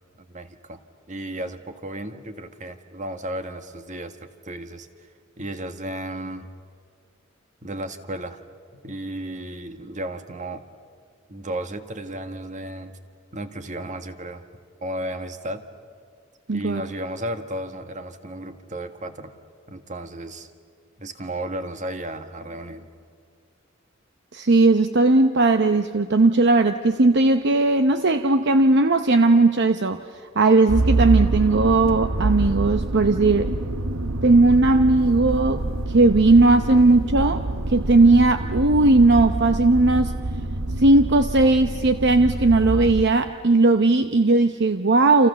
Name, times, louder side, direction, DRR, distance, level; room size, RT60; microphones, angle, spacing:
voice 1, 0.3-0.8 1.1-4.9 5.4-6.5 7.6-8.4 8.8-10.6 11.3-13.0 13.3-14.4 14.8-15.6 16.5-19.3 19.7-20.5 21.0-22.9, right 1 dB, 35° right, 8 dB, 1.7 m, -34 dB
voice 2, 16.5-16.8 24.3-30.0 30.4-33.5 34.2-37.4 37.7-40.1 40.8-45.3, right 2 dB, 55° right, 8 dB, 0.8 m, -17 dB
Motor vehicle (road), 30.7-43.0, right 2 dB, 85° right, 1.1 m, -26 dB
29.0 x 28.5 x 7.0 m, 2.1 s
head